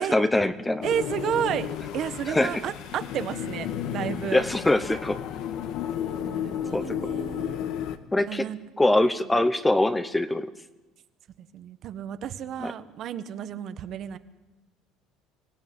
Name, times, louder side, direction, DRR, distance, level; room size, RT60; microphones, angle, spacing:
voice 1, 0.0-0.8 2.3-2.6 4.3-5.2 6.7-7.0 8.1-8.5 8.8-10.5 12.6-12.7, left 1 dB, 10° left, 12 dB, 0.8 m, -23 dB
sound 1, 0.8-8.0, left 9 dB, 65° left, 1.7 m, -33 dB
voice 2, 0.8-1.7 1.9-4.4 6.2-7.6 8.2-8.6 11.4-14.2, right 9 dB, 45° right, 11 dB, 1.3 m, -32 dB
25.0 x 17.0 x 9.4 m, 1.2 s
cardioid pair, 140°, 0 cm